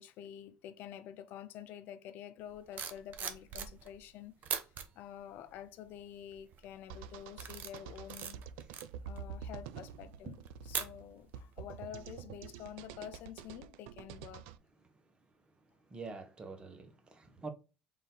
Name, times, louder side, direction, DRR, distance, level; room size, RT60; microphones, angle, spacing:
voice 1, 0.0-4.7 5.0-8.4 9.1-10.3 10.7-14.5, left 10 dB, 65° left, 0.5 m, -48 dB
sound 1, 2.5-4.0 4.4-4.8 5.5-5.8 6.3-6.7 7.1-11.4 11.7-12.0, right 7 dB, 55° right, 0.7 m, -42 dB
sound 2, 6.9-14.6, right 7 dB, 80° right, 0.4 m, -47 dB
voice 2, 15.9-17.5, right 4 dB, 30° right, 1.0 m, -46 dB
3.8 x 2.7 x 3.8 m
supercardioid pair, 75°, 4 cm